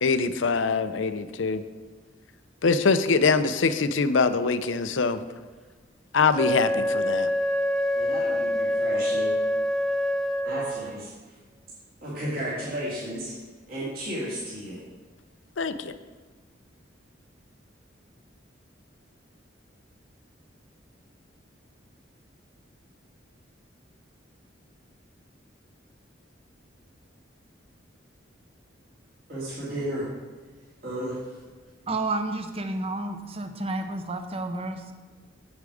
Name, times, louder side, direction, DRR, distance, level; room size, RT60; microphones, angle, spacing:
voice 1, 0.0-1.6 2.6-5.2 6.1-7.3 15.6-15.9, left 4 dB, 80° left, 11 dB, 0.6 m, -23 dB
Wind instrument woodwind instrument, 6.3-11.0, left 1 dB, ahead, 0.4 m, -26 dB
voice 2, 7.9-9.3 10.4-11.1 12.0-13.3 13.7-14.8 29.3-30.1 30.8-31.2, equal, 50° right, -9 dB, 2.6 m, -33 dB
voice 3, 31.9-34.9, right 2 dB, 30° right, 7 dB, 0.8 m, -31 dB
8.3 x 8.2 x 4.9 m, 1.4 s
head